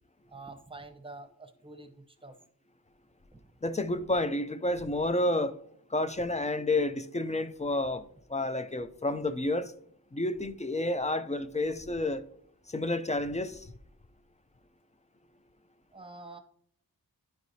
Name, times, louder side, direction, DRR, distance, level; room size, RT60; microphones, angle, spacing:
voice 1, 0.3-2.4 15.9-16.4, right 2 dB, 15° right, 0.8 m, -47 dB
voice 2, 3.6-5.6 5.9-9.7 10.1-12.3 12.7-13.7, left 2 dB, 20° left, 0.4 m, -30 dB
10.5 x 4.5 x 2.7 m
wide cardioid pair, 55°, 38 cm